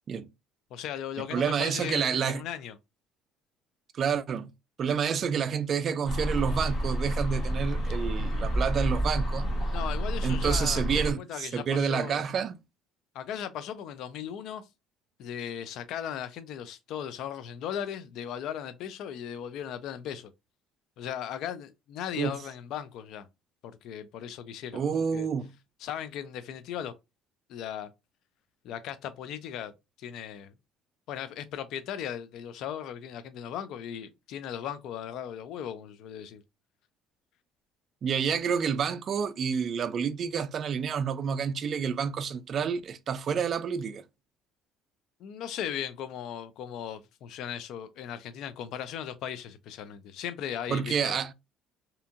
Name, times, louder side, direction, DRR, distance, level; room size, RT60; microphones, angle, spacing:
voice 1, 0.7-2.8 9.7-12.3 13.1-14.7 15.2-20.3 21.0-23.3 23.6-24.8 25.1-25.3 25.8-26.9 27.5-27.9 28.6-29.7 30.0-30.5 31.1-36.4 45.2-51.2, left 9 dB, 65° left, 0.3 m, -37 dB
voice 2, 1.3-2.4 4.0-4.5 4.8-9.5 10.2-12.6 22.2-22.4 24.7-25.5 38.0-44.0 50.7-51.3, right 7 dB, 40° right, 0.3 m, -29 dB
sound 1, 6.1-11.1, right 1 dB, 35° left, 1.0 m, -29 dB
2.7 x 2.6 x 2.4 m
cardioid pair, 140°, 0 cm